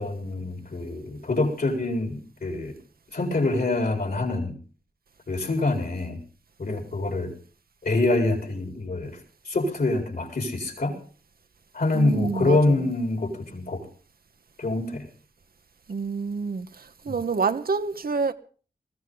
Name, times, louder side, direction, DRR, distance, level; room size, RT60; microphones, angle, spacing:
voice 1, 0.0-2.7 3.1-4.5 5.3-6.2 6.6-7.3 7.8-9.2 9.5-10.9 11.7-13.8 14.6-15.0, left 2 dB, 65° left, 4.5 m, -25 dB
voice 2, 11.9-12.9 15.9-18.3, right 4 dB, 65° right, 1.0 m, -28 dB
20.5 x 14.5 x 4.0 m
cardioid pair, 55°, 16 cm